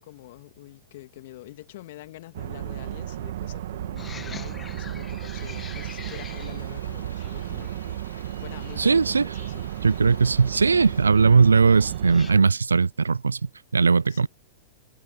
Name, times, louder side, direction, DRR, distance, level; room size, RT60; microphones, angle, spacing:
voice 1, 0.0-9.7 14.1-14.3, left 16 dB, 60° left, 2.6 m, -45 dB
sound 1, 2.3-12.4, right 12 dB, 65° right, 1.7 m, -34 dB
sound 2, 4.0-12.3, left 6 dB, 20° left, 1.9 m, -46 dB
sound 3, 5.4-11.0, left 4 dB, 90° left, 3.2 m, -50 dB
voice 2, 8.8-9.2 9.8-13.4 13.7-14.3, right 5 dB, 90° right, 0.4 m, -19 dB
hypercardioid pair, 105°, 0 cm